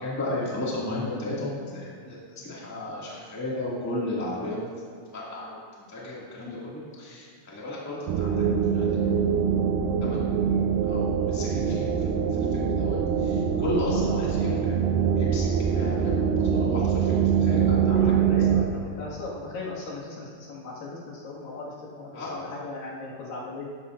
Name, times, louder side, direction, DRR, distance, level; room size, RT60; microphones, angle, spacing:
voice 1, 0.0-2.2 2.4-4.6 5.1-5.6 5.9-8.4 8.7-9.2 10.0-10.6 10.9-11.9 12.5-14.8 15.1-18.0 22.1-22.4, left 1 dB, 5° left, -6 dB, 1.3 m, -34 dB
sound 1, 8.1-18.6, right 7 dB, 80° right, 2.2 m, -24 dB
voice 2, 17.9-23.6, left 3 dB, 85° left, -5 dB, 3.6 m, -38 dB
13.0 x 11.5 x 2.6 m, 2.3 s
omnidirectional pair, 3.9 m